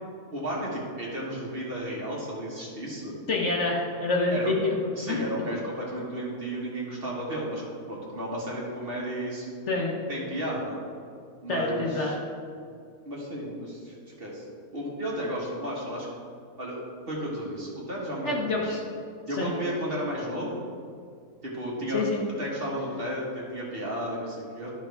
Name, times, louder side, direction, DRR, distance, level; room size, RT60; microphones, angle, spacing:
voice 1, 0.3-3.1 4.3-4.5 4.9-9.5 10.1-10.8 11.4-12.1 13.0-14.5 14.7-16.1 16.6-16.8 17.1-18.8 19.3-20.6 21.4-22.0 22.4-24.7, equal, 40° right, -4 dB, 1.7 m, -33 dB
voice 2, 3.3-4.7 5.1-5.2 9.7-10.0 11.5-12.2 18.2-18.8 19.4-19.5 21.9-22.2, left 3 dB, 55° left, -2 dB, 1.2 m, -27 dB
12.0 x 5.8 x 3.4 m, 2.3 s
omnidirectional pair, 1.6 m